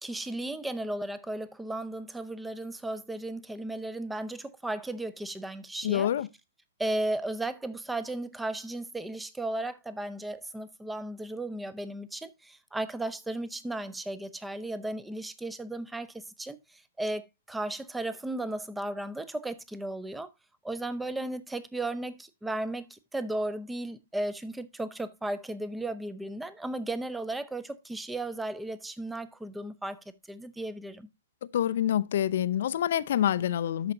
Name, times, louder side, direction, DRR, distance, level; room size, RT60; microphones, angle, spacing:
voice 1, 0.0-6.1 6.8-17.2 17.5-20.3 20.6-30.0 30.3-31.1, right 1 dB, 5° right, 0.7 m, -35 dB
voice 2, 5.8-6.3 31.5-33.9, left 10 dB, 60° left, 0.5 m, -26 dB
13.0 x 5.1 x 2.6 m
figure-of-eight pair, 120°, 0 cm